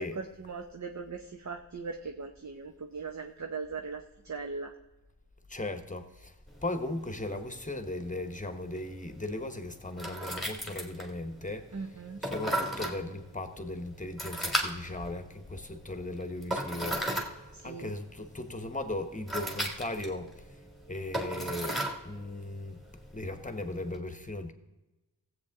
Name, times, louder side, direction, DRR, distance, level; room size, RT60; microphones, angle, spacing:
voice 1, 0.0-4.7 11.7-12.2 17.5-17.9, right 4 dB, 45° right, 0.7 m, -39 dB
voice 2, 5.5-6.4 6.6-11.7 12.2-20.6 20.9-22.8 23.1-24.5, left 2 dB, 20° left, 1.1 m, -37 dB
sound 1, 6.5-24.0, right 1 dB, ahead, 1.7 m, -38 dB
16.5 x 8.0 x 3.6 m
wide cardioid pair, 75°, 40 cm